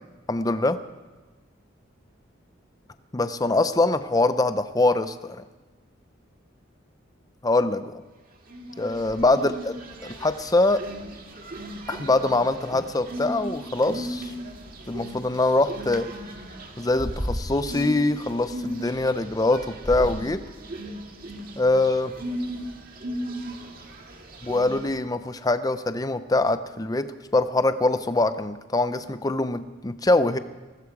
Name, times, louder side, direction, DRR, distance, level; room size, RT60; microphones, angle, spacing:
voice 1, 0.3-0.8 3.1-5.4 7.4-7.9 8.8-9.7 10.0-10.8 11.9-14.3 14.9-16.1 16.8-20.4 21.6-22.1 24.4-30.4, left 2 dB, 20° left, 11 dB, 0.6 m, -23 dB
sound 1, 8.5-25.0, equal, 45° right, 2.0 m, -36 dB
20.0 x 14.5 x 4.8 m, 1.3 s
head